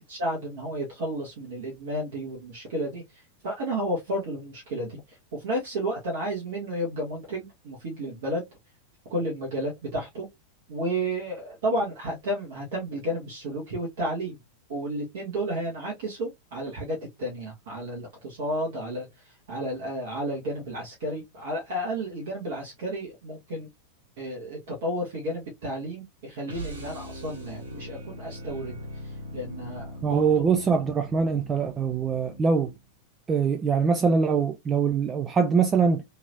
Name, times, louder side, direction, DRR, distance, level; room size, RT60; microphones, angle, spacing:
voice 1, 0.0-8.4 9.1-10.3 10.7-14.4 14.7-23.7 24.2-28.8 29.0-30.4, right 1 dB, 55° right, 1.6 m, -32 dB
sound 1, 26.4-32.9, equal, 75° right, 1.7 m, -41 dB
voice 2, 30.0-32.7 33.3-36.0, right 5 dB, 20° right, 0.5 m, -23 dB
3.8 x 3.0 x 2.6 m
figure-of-eight pair, 90°, 0 cm